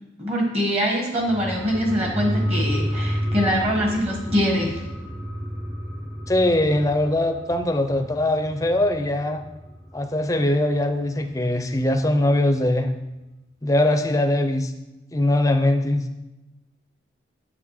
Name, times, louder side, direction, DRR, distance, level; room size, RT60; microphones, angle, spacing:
voice 1, 0.2-4.8, equal, 35° right, 1 dB, 1.4 m, -23 dB
sound 1, 1.2-10.3 10.6-10.7, equal, 70° right, 1.9 m, -30 dB
voice 2, 6.3-9.4 9.9-12.9 13.6-14.7 15.1-16.1, left 1 dB, 15° left, 7 dB, 0.5 m, -21 dB
8.0 x 5.8 x 4.8 m, 1.0 s
head